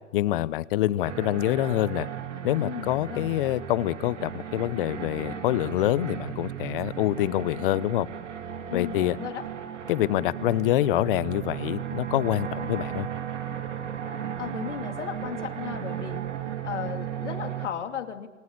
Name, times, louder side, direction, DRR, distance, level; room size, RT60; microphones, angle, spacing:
voice 1, 0.1-2.1 2.4-8.1 8.7-9.2 9.9-13.1, left 14 dB, 45° left, 19 dB, 1.0 m, -26 dB
sound 1, 1.0-17.7, right 9 dB, 70° right, 2.9 m, -35 dB
voice 2, 2.6-3.3 8.7-9.5 14.4-16.2 16.6-18.3, left 9 dB, 65° left, 6 dB, 2.7 m, -35 dB
28.0 x 20.0 x 8.4 m, 1.3 s
hypercardioid pair, 120°, 37 cm